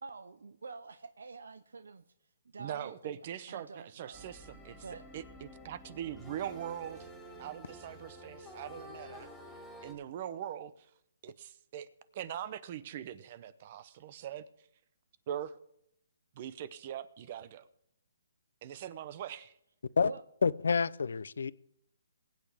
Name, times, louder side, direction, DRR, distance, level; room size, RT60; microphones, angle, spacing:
voice 1, 0.0-2.0 2.5-3.1 3.5-4.5 4.8-5.1 20.0-20.2, right 4 dB, 90° right, 0.7 m, -47 dB
voice 2, 2.6-4.8 5.1-7.1 7.4-9.3 9.8-10.9 11.2-11.9 12.1-14.4 15.3-15.5 16.3-17.7 18.6-19.5, right 10 dB, 35° right, 0.7 m, -42 dB
sound 1, 4.1-9.9, equal, 5° left, 2.5 m, -50 dB
Acoustic guitar, 6.2-9.5, left 11 dB, 35° left, 1.8 m, -65 dB
voice 3, 20.4-21.5, left 5 dB, 75° left, 0.5 m, -28 dB
21.0 x 8.9 x 3.5 m
hypercardioid pair, 165°, 0 cm